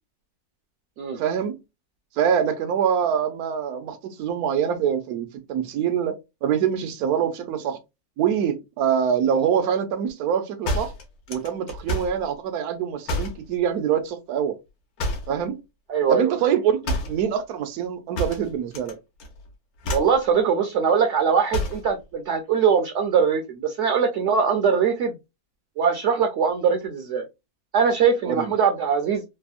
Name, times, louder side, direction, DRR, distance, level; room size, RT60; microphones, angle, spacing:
voice 1, 1.2-1.6 2.2-7.8 8.2-10.9 11.3-14.6 15.3-15.6 16.1-19.0 28.2-28.5, right 8 dB, 80° right, 1.1 m, -24 dB
sound 1, 10.7-12.2 13.1-13.4 15.0-15.4 16.8-17.2 18.2-18.9 19.2-19.5 19.8-20.2 21.5-21.9, equal, 75° left, 1.3 m, -28 dB
voice 2, 15.9-16.4 19.9-25.1 25.8-27.2 27.7-29.2, right 6 dB, 65° right, 0.8 m, -21 dB
3.4 x 2.0 x 2.3 m
omnidirectional pair, 1.6 m